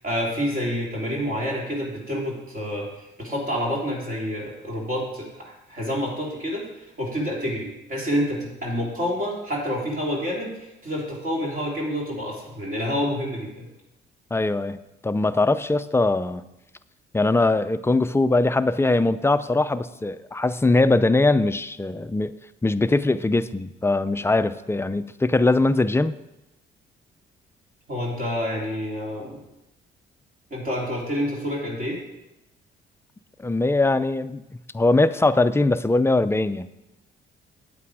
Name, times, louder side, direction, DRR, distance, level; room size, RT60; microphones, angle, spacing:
voice 1, 0.0-2.9 3.2-6.7 7.0-13.7 27.9-29.4 30.5-32.0, equal, 45° right, -3 dB, 3.2 m, -28 dB
voice 2, 14.3-14.8 15.0-16.4 17.1-22.3 22.6-26.1 33.4-34.4 34.7-36.7, left 2 dB, 10° left, 12 dB, 0.4 m, -21 dB
8.9 x 8.5 x 4.9 m, 0.93 s
cardioid pair, 90°, 20 cm